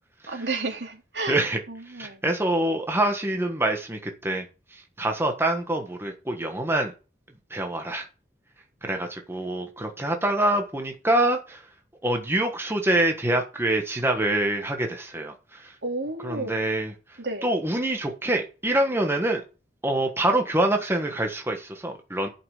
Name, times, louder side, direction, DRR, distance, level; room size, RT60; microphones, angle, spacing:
voice 1, 0.3-1.4 1.7-2.2 15.8-16.6 17.2-17.5, right 3 dB, 80° right, 2.8 m, -31 dB
voice 2, 1.3-1.6 1.9-4.4 4.7-6.9 7.5-8.1 8.8-11.6 12.0-15.7 16.2-16.9 17.4-19.4 19.8-22.3, right 1 dB, 15° right, 1.4 m, -25 dB
11.0 x 5.9 x 6.6 m
head